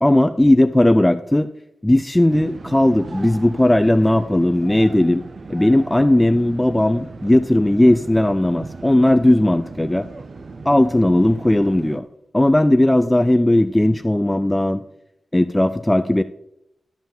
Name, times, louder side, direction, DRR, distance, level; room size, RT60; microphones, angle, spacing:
voice 1, 0.0-1.5 1.8-5.2 5.5-10.1 10.7-12.1 12.3-14.8 15.3-16.2, left 1 dB, 10° left, 10 dB, 0.3 m, -17 dB
sound 1, 2.3-12.0, right 4 dB, 45° right, 0.5 m, -37 dB
12.5 x 7.2 x 3.8 m, 0.79 s
wide cardioid pair, 160°, 0 cm